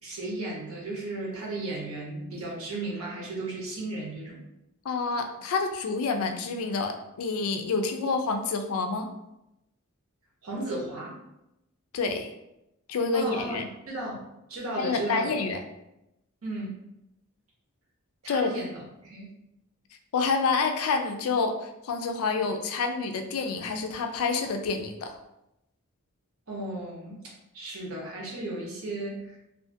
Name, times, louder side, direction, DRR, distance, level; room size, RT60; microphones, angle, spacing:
voice 1, 0.0-4.4 10.4-11.2 13.1-14.2 14.5-15.4 16.4-16.7 18.2-19.3 26.5-29.4, right 2 dB, 85° right, -3 dB, 0.8 m, -35 dB
voice 2, 4.8-9.1 11.9-12.3 12.9-13.7 14.8-15.6 18.3-18.5 20.1-25.2, left 4 dB, 90° left, 6 dB, 0.4 m, -28 dB
2.4 x 2.3 x 2.5 m, 0.87 s
head